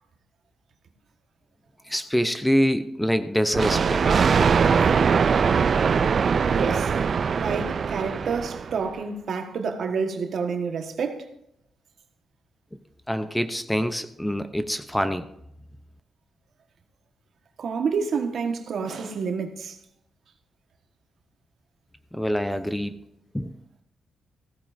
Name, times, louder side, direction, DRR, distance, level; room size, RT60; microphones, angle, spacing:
voice 1, 1.9-4.0 13.1-15.3 22.1-23.0 23.3-23.5, equal, 5° left, 0.6 m, -25 dB
Thunder, 3.5-8.9, right 6 dB, 50° right, 0.4 m, -21 dB
voice 2, 6.5-6.9 7.3-11.3 17.6-19.8, right 5 dB, 65° right, 1.4 m, -28 dB
15.5 x 14.0 x 2.6 m
cardioid pair, 115°, 0 cm